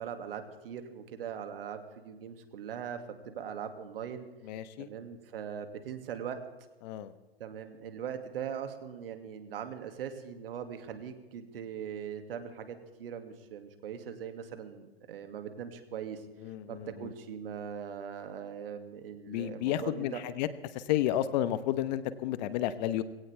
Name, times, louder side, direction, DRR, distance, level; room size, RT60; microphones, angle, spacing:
voice 1, 0.0-4.3 4.8-6.4 7.4-16.2 16.7-20.2, right 8 dB, 65° right, 7 dB, 2.4 m, -40 dB
voice 2, 4.4-4.9 6.8-7.1 16.4-17.1 19.3-20.5 20.7-23.0, left 12 dB, 45° left, 14 dB, 1.2 m, -31 dB
20.5 x 17.5 x 3.5 m, 1.2 s
hypercardioid pair, 125°, 31 cm